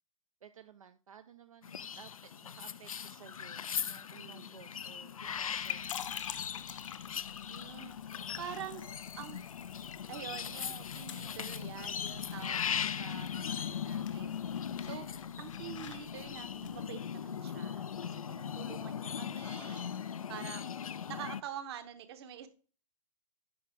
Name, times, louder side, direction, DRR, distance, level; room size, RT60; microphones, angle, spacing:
voice 1, 0.4-6.1, right 8 dB, 75° right, 10 dB, 0.6 m, -56 dB
sound 1, 1.6-21.4, left 8 dB, 80° left, 0.4 m, -39 dB
voice 2, 4.1-4.5 7.5-7.9 8.4-8.9 9.2-9.4 10.1-14.4 14.8-15.1 15.4-19.9 20.3-20.8 21.1-22.5, right 10 dB, 50° right, 10 dB, 1.2 m, -46 dB
sound 2, 5.3-16.8, left 9 dB, 65° left, 0.8 m, -48 dB
10.0 x 5.7 x 3.4 m, 0.39 s
figure-of-eight pair, 120°, 18 cm